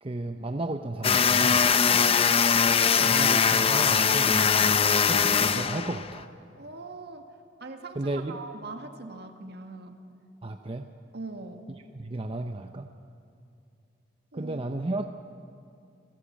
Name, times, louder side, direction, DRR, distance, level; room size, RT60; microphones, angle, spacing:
voice 1, 0.0-1.7 3.0-4.8 5.0-6.3 7.9-8.4 10.4-10.9 11.9-12.9 14.3-15.1, right 2 dB, 30° right, 6 dB, 0.7 m, -33 dB
sound 1, 1.0-6.2, left 6 dB, 30° left, 0.6 m, -22 dB
voice 2, 1.8-2.2 6.6-7.3 7.6-10.0 11.1-11.7 14.3-14.6, right 3 dB, 60° right, 5 dB, 1.8 m, -41 dB
26.5 x 16.5 x 7.3 m, 2.5 s
head